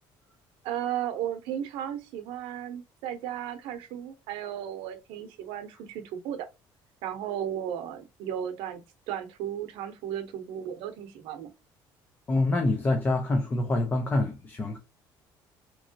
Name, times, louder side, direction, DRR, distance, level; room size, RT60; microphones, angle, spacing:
voice 1, 0.6-6.5 7.0-11.5, right 10 dB, 90° right, 0.7 m, -35 dB
voice 2, 12.3-14.8, left 2 dB, 20° left, 0.6 m, -26 dB
3.6 x 3.0 x 2.7 m
cardioid pair, 160°, 9 cm